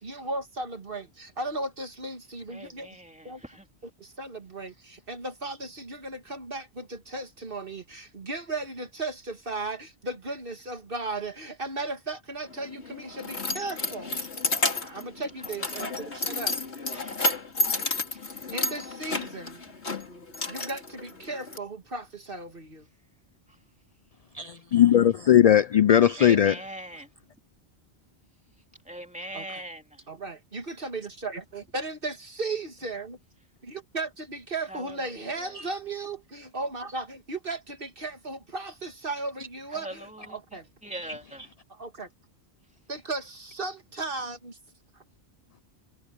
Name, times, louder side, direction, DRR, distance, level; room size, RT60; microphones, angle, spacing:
voice 1, 0.0-2.9 3.2-3.4 4.0-14.2 14.8-16.5 18.5-19.6 20.5-22.9 29.3-29.6 30.1-33.2 33.6-40.7 41.7-42.1 42.9-44.6, right 2 dB, 55° right, 2.1 m, -36 dB
voice 2, 2.5-3.7 15.4-15.9 16.9-17.2 18.1-18.5 23.5-23.6 26.2-27.4 28.8-30.1 34.7-35.7 39.7-41.5, right 1 dB, 5° right, 3.1 m, -42 dB
Keys jangling, 12.5-21.6, left 2 dB, 80° left, 2.8 m, -31 dB
voice 3, 24.3-26.5 40.9-41.0, left 10 dB, 55° left, 0.4 m, -19 dB
omnidirectional pair, 1.1 m